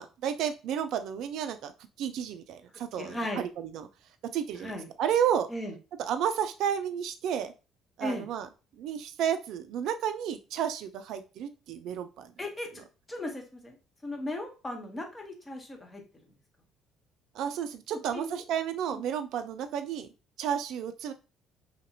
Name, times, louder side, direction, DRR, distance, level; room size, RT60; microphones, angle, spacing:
voice 1, 0.0-1.7 2.0-3.9 4.2-5.5 6.0-7.5 8.0-8.5 8.8-12.3 17.3-20.1 20.4-21.1, right 9 dB, 65° right, 9 dB, 0.4 m, -32 dB
voice 2, 3.0-3.5 4.6-4.9 5.5-5.7 8.0-8.3 12.4-12.7 13.1-13.7 14.0-16.0 18.1-18.4 18.9-19.0, left 1 dB, 20° left, 2 dB, 1.1 m, -36 dB
2.8 x 2.6 x 2.8 m, 0.31 s
hypercardioid pair, 55°, 0 cm